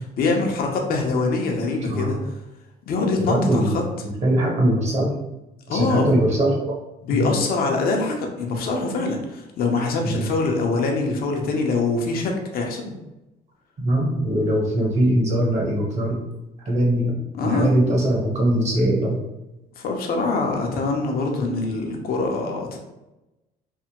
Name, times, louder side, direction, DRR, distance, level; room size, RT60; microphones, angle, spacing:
voice 1, 0.2-2.3 2.9-3.8 5.7-6.1 7.0-12.9 17.3-17.7 19.8-22.8, left 3 dB, 60° left, 1 dB, 0.7 m, -24 dB
voice 2, 1.8-2.1 3.3-3.7 4.2-5.1 5.7-6.7 7.1-7.3 10.0-10.3 12.3-12.4 13.8-16.2 16.7-17.2 17.4-19.2, right 1 dB, 40° right, -2 dB, 1.1 m, -21 dB
3.3 x 2.1 x 2.9 m, 0.98 s
cardioid pair, 110°, 17 cm